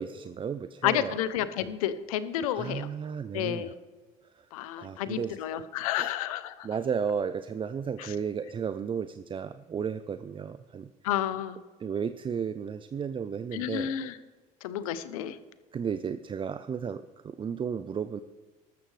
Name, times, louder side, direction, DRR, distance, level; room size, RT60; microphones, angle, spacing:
voice 1, 0.0-1.2 2.4-3.7 4.4-4.5 4.8-5.6 5.9-6.1 6.6-10.9 11.8-13.9 15.7-18.2, right 7 dB, 30° right, 11 dB, 0.5 m, -34 dB
voice 2, 0.8-2.9 3.3-3.8 4.5-6.7 8.0-8.1 11.0-11.6 13.5-14.2 14.6-15.4, left 11 dB, 90° left, 14 dB, 0.7 m, -31 dB
13.5 x 13.0 x 3.3 m, 1.4 s
supercardioid pair, 80°, 17 cm